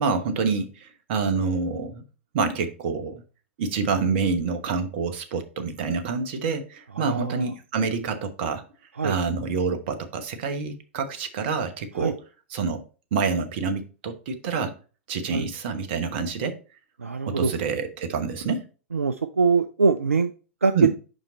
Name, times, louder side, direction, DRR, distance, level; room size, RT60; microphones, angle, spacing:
voice 1, 0.0-2.0 2.3-3.2 3.6-8.6 9.0-12.2 12.5-12.8 13.1-14.7 15.1-16.6 17.3-18.7 20.7-20.9, right 5 dB, 50° right, 1.0 m, -27 dB
voice 2, 7.0-7.5 9.0-9.1 12.0-12.1 15.3-15.5 17.0-17.5 18.9-20.3 20.6-20.9, right 5 dB, 80° right, 0.4 m, -23 dB
5.3 x 5.2 x 3.9 m
figure-of-eight pair, 90°, 7 cm